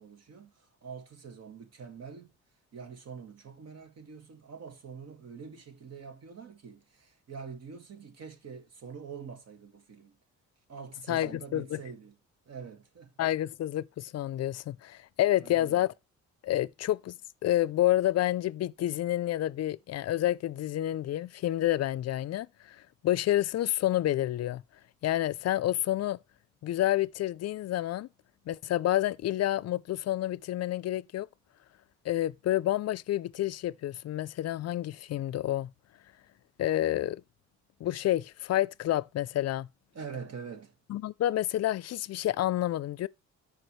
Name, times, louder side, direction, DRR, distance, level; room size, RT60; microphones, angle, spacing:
voice 1, 0.0-2.3 2.7-10.2 10.7-12.2 12.5-13.1 15.4-15.8 39.9-40.8, right 6 dB, 55° right, 2.0 m, -45 dB
voice 2, 11.1-11.8 13.2-15.9 16.4-17.2 17.4-24.6 25.0-26.2 26.6-28.1 28.5-31.3 32.0-35.7 36.6-37.2 37.8-39.7 40.9-43.1, left 13 dB, 55° left, 0.5 m, -29 dB
13.5 x 4.9 x 3.2 m
cardioid pair, 90°, 30 cm